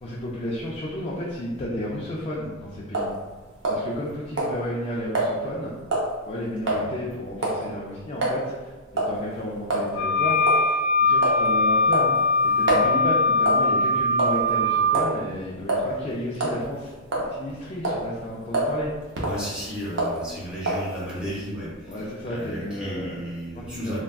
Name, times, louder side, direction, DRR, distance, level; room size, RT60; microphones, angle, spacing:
voice 1, 0.0-3.1 3.7-5.7 6.2-18.9 21.8-23.2 23.5-24.0, left 1 dB, 30° left, -6 dB, 0.3 m, -32 dB
sound 1, 2.9-3.1 3.6-4.1 4.4-4.5 5.1-5.3 5.9-6.1 6.7-6.8 7.4-7.6 8.2-8.4 9.0-9.2 9.7-9.9 10.5-10.6 11.2-11.5 11.9-12.9 13.5-13.7 14.2-14.5 14.9-15.1 15.7-15.9 16.3-16.6 17.1-17.5 17.8-18.0 18.5-18.8 19.1-19.4 20.0-20.2 20.7-20.9, right 2 dB, 65° right, 0.6 m, -25 dB
Wind instrument woodwind instrument, 9.9-14.9, left 2 dB, 80° left, 0.8 m, -21 dB
voice 2, 19.2-21.7 22.3-24.0, equal, 5° right, -7 dB, 0.8 m, -33 dB
3.4 x 2.2 x 2.2 m, 1.3 s
head